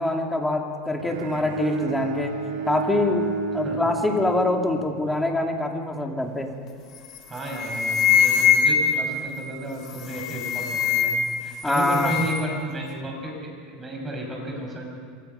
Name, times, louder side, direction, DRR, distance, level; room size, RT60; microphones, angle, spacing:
voice 1, 0.0-2.4 2.7-3.3 3.5-6.5 11.6-12.1, left 2 dB, 5° left, 2 dB, 2.6 m, -24 dB
Bowed string instrument, 1.0-5.2, right 3 dB, 80° right, 2.9 m, -31 dB
voice 2, 3.6-3.9 7.3-11.1 11.4-14.9, right 1 dB, 15° right, 0 dB, 6.4 m, -33 dB
sound 1, 6.9-7.2 7.5-9.1 9.9-11.4 11.7-12.5, left 7 dB, 45° left, 2.2 m, -22 dB
27.0 x 22.5 x 5.7 m, 2.2 s
supercardioid pair, 135°, 0 cm